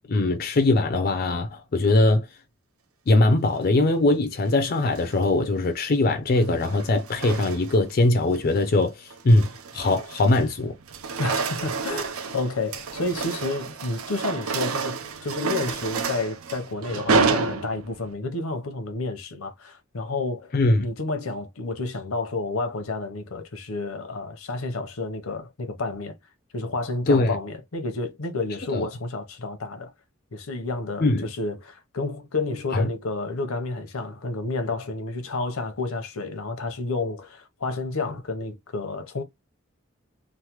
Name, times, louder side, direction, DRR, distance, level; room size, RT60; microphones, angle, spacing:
voice 1, 0.1-2.3 3.1-10.7 20.5-20.8 27.1-27.4 28.7-28.9 31.0-31.3 32.7-32.9, left 2 dB, 45° left, 0.4 m, -21 dB
sound 1, 4.8-5.2 6.4-7.9 8.3-8.6 9.1-10.5 10.8-18.1, right 4 dB, 85° right, 0.6 m, -29 dB
voice 2, 11.2-20.5 20.8-26.2 26.5-29.9 30.3-39.2, left 3 dB, 80° left, 0.7 m, -30 dB
3.1 x 2.1 x 2.9 m
head